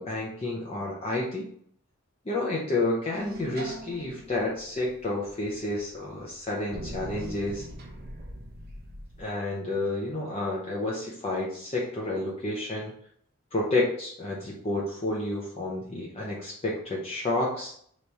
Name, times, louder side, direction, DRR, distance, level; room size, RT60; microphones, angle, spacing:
voice 1, 0.0-1.5 2.3-7.7 9.2-12.9 13.5-17.7, left 2 dB, 30° left, -4 dB, 0.6 m, -30 dB
sound 1, 3.1-9.3, equal, 50° right, 0.7 m, -42 dB
3.4 x 3.1 x 4.0 m, 0.64 s
head